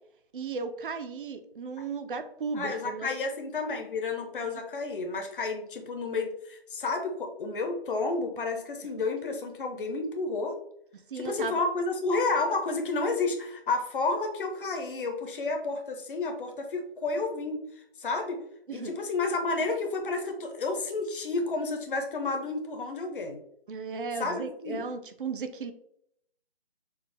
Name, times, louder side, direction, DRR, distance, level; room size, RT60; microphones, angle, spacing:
voice 1, 0.3-3.1 11.1-11.6 18.7-18.9 23.7-25.7, right 5 dB, 55° right, 9 dB, 0.4 m, -35 dB
voice 2, 2.5-10.5 11.1-17.6 18.0-18.4 18.7-23.4 24.2-24.8, left 3 dB, 55° left, 4 dB, 0.7 m, -31 dB
4.4 x 2.0 x 3.2 m, 0.73 s
hypercardioid pair, 170°, 31 cm